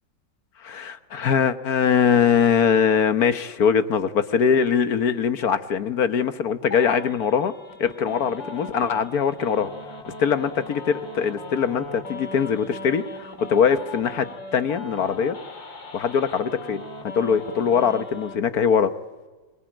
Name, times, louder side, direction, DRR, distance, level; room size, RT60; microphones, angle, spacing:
voice 1, 0.6-7.5 7.8-9.7 10.2-15.4 15.9-16.8 17.1-18.9, left 7 dB, 60° left, 11 dB, 1.5 m, -22 dB
sound 1, 6.7-18.3, left 2 dB, 90° left, 3.4 m, -39 dB
25.0 x 22.0 x 9.0 m, 1.3 s
omnidirectional pair, 1.9 m